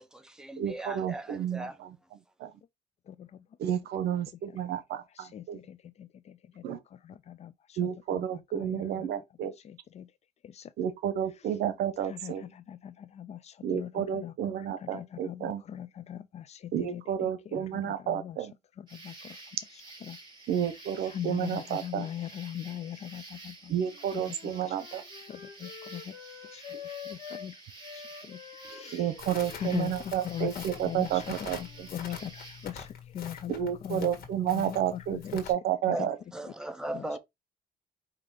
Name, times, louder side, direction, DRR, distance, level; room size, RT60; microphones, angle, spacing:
voice 1, 0.0-1.8 35.9-37.2, right 1 dB, 5° right, 0.7 m, -38 dB
voice 2, 0.6-1.9 2.4-2.5 3.6-5.6 6.6-6.8 7.8-9.5 10.8-12.4 13.6-15.6 16.7-18.5 20.5-22.1 23.7-25.0 28.9-31.9 33.5-36.2, right 10 dB, 70° right, 0.9 m, -31 dB
voice 3, 3.1-3.5 4.5-4.7 5.1-9.1 9.4-10.1 10.4-10.7 12.0-18.4 18.8-19.4 19.7-20.2 21.1-23.7 24.1-24.8 25.3-26.1 26.5-27.6 27.9-29.1 29.5-34.2 34.5-35.4 35.9-36.1 36.9-37.1, left 10 dB, 40° left, 0.4 m, -41 dB
sound 1, 18.9-32.7, right 3 dB, 25° right, 2.8 m, -49 dB
Wind instrument woodwind instrument, 23.6-27.5 27.8-32.1, left 8 dB, 90° left, 1.9 m, -48 dB
Crackle, 29.2-35.5, left 7 dB, 65° left, 1.6 m, -45 dB
5.0 x 2.8 x 3.8 m
cardioid pair, 110°, 17 cm